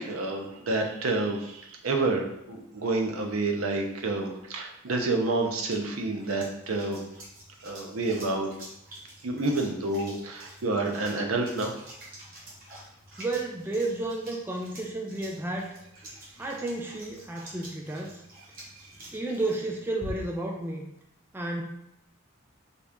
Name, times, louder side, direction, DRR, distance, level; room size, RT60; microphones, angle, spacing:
voice 1, 0.0-7.0 7.6-8.5 9.2-11.7 18.8-18.9, right 2 dB, 90° right, 2 dB, 0.7 m, -29 dB
sound 1, 5.3-20.5, right 1 dB, 45° right, 1.1 m, -47 dB
voice 2, 13.2-15.7 16.4-18.2 19.1-20.8 21.3-21.6, right 2 dB, 10° right, 1 dB, 0.3 m, -32 dB
4.1 x 2.4 x 3.4 m, 0.80 s
head